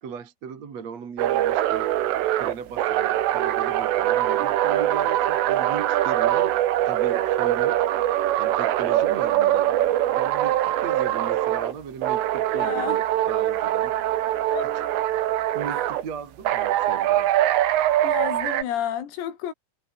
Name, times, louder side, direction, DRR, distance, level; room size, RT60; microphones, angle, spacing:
voice 1, 0.0-1.9 2.4-6.6 6.8-7.8 8.4-13.9 15.5-17.3, right 6 dB, 40° right, 3.3 m, -37 dB
sound 1, 1.2-11.7 12.0-16.0 16.5-18.6, right 13 dB, 75° right, 4.3 m, -23 dB
voice 2, 12.5-13.0 14.5-14.7 18.0-19.5, left 10 dB, 90° left, 5.6 m, -30 dB
omnidirectional pair, 5.9 m